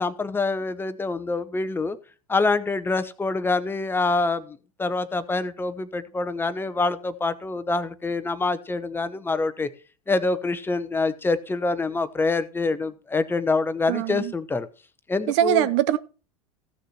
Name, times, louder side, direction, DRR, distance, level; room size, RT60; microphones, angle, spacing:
voice 1, 0.0-2.0 2.3-9.7 10.1-14.7 15.1-15.7, left 3 dB, 10° left, 1.0 m, -26 dB
voice 2, 13.9-14.3 15.3-16.0, right 12 dB, 55° right, 0.6 m, -22 dB
15.0 x 6.5 x 4.3 m
figure-of-eight pair, 85°, 18 cm